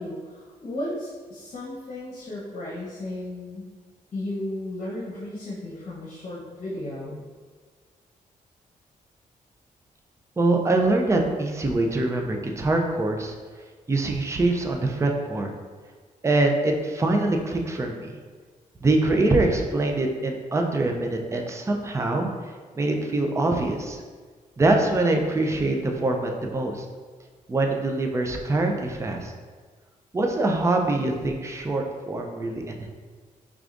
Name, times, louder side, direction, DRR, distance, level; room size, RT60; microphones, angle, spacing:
voice 1, 0.0-3.7 4.1-7.2, left 1 dB, 50° left, -5 dB, 0.9 m, -34 dB
voice 2, 10.4-13.3 13.9-15.5 16.2-18.1 18.8-22.3 22.8-24.0 24.6-26.9 27.5-29.3 30.1-32.9, right 2 dB, 20° right, 2 dB, 0.5 m, -24 dB
4.8 x 3.5 x 2.5 m, 1.5 s
cardioid pair, 85°, 15 cm